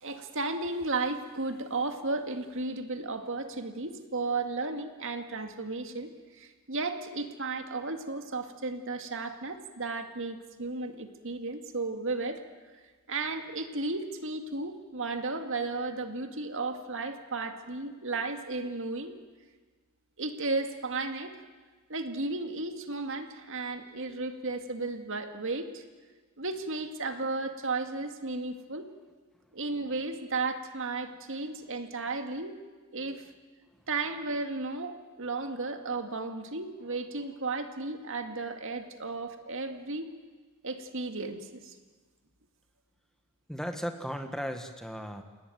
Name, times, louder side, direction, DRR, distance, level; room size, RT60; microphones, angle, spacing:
voice 1, 0.0-12.4 13.1-19.2 20.2-21.4 21.9-25.8 26.4-28.9 29.5-32.6 32.9-33.3 33.9-40.1 40.6-41.8, right 3 dB, 60° right, 6 dB, 2.1 m, -34 dB
voice 2, 43.5-45.2, equal, ahead, 6 dB, 1.6 m, -36 dB
29.5 x 18.5 x 9.3 m, 1.4 s
head